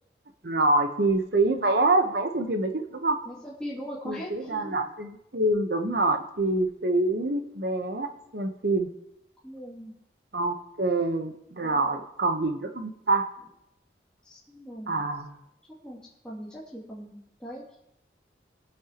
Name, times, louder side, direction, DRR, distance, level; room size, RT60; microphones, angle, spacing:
voice 1, 0.4-3.2 4.0-8.9 10.3-13.2 14.9-15.3, right 2 dB, 60° right, 5 dB, 1.1 m, -26 dB
voice 2, 3.2-4.7 9.4-9.9 11.6-12.0 14.2-15.0 15.8-16.0 16.2-17.6, equal, 5° left, -7 dB, 2.7 m, -40 dB
22.0 x 8.9 x 3.1 m, 0.82 s
head